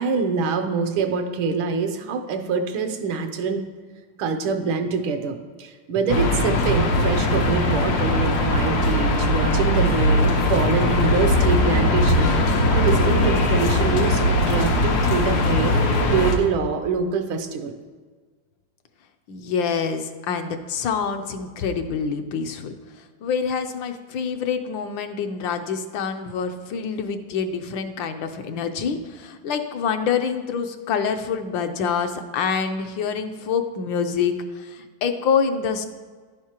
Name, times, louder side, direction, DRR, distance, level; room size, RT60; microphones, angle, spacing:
voice 1, 0.0-3.6 4.2-15.8 16.1-17.7, right 5 dB, 75° right, 7 dB, 1.5 m, -25 dB
sound 1, 6.1-16.3, left 1 dB, 90° left, 1.9 m, -20 dB
voice 2, 19.3-35.9, left 6 dB, 75° left, 6 dB, 1.3 m, -26 dB
11.0 x 9.4 x 2.9 m, 1.5 s
omnidirectional pair, 2.3 m